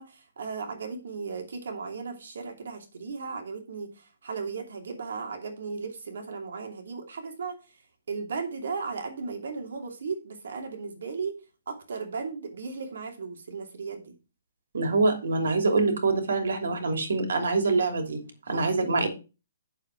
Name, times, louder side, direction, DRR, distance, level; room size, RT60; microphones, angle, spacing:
voice 1, 0.0-7.6 8.1-11.4 11.7-14.2 18.4-19.1, right 4 dB, 70° right, 5 dB, 2.6 m, -36 dB
voice 2, 14.7-18.2 18.5-19.1, right 3 dB, 85° right, 6 dB, 2.9 m, -25 dB
8.8 x 6.9 x 4.6 m, 0.31 s
hypercardioid pair, 180°, 0 cm